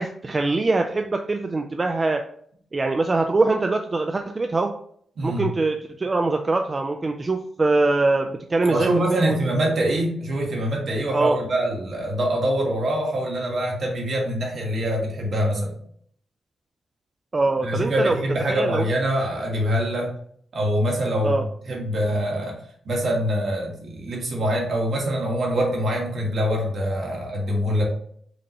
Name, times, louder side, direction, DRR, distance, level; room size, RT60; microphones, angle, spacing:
voice 1, 0.0-2.2 2.7-4.7 5.2-9.4 11.1-11.4 17.3-18.2 18.5-18.8 21.2-21.4, right 3 dB, 30° right, 5 dB, 0.3 m, -23 dB
voice 2, 8.7-15.8 17.6-20.1 20.5-22.6 22.8-27.8, equal, 60° right, -1 dB, 1.4 m, -24 dB
5.2 x 2.9 x 2.9 m, 0.63 s
cardioid pair, 115°, 0 cm